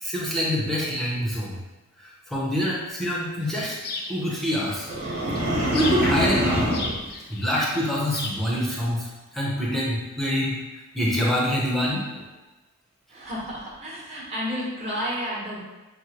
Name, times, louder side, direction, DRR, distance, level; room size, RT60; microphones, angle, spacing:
voice 1, 0.0-1.6 2.0-3.8 4.1-4.9 5.7-6.7 7.3-10.6 10.9-12.2, equal, ahead, -6 dB, 0.8 m, -26 dB
sound 1, 3.4-8.5, left 3 dB, 45° left, 0.5 m, -36 dB
sound 2, 4.9-7.0, equal, 90° right, 1.4 m, -24 dB
voice 2, 13.1-15.6, equal, 30° right, -7 dB, 1.1 m, -31 dB
6.2 x 2.2 x 2.9 m, 1.1 s
head